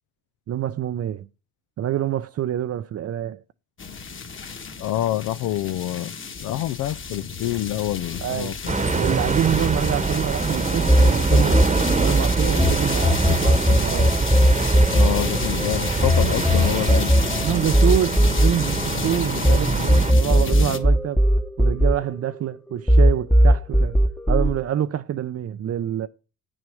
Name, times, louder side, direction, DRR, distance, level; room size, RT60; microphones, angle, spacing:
voice 1, 0.5-1.3 1.8-3.4 8.2-8.6 8.9-14.2 16.8-17.1 17.4-21.3 21.6-24.0 24.3-26.1, right 10 dB, 55° right, 0.6 m, -26 dB
sound 1, 3.8-20.8, left 5 dB, 40° left, 1.7 m, -32 dB
voice 2, 4.8-6.1 6.4-8.8 14.9-17.1, left 14 dB, 80° left, 0.5 m, -27 dB
sound 2, 8.7-20.1, right 4 dB, 25° right, 1.1 m, -24 dB
sound 3, 10.9-12.7 13.0-19.6 19.9-22.6 22.9-24.5, equal, 5° left, 0.9 m, -17 dB
8.9 x 6.3 x 6.3 m
cardioid pair, 90°, 30 cm